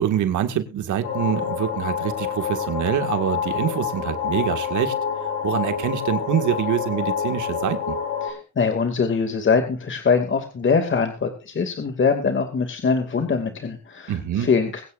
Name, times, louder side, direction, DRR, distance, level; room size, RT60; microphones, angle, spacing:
voice 1, 0.0-4.9 5.4-7.9 14.1-14.5, right 10 dB, 75° right, 8 dB, 1.9 m, -25 dB
sound 1, 1.0-8.3, left 7 dB, 70° left, 5.0 m, -27 dB
voice 2, 8.2-14.8, left 5 dB, 40° left, 6 dB, 2.4 m, -23 dB
22.5 x 9.7 x 2.5 m, 0.35 s
cardioid pair, 90°, 30 cm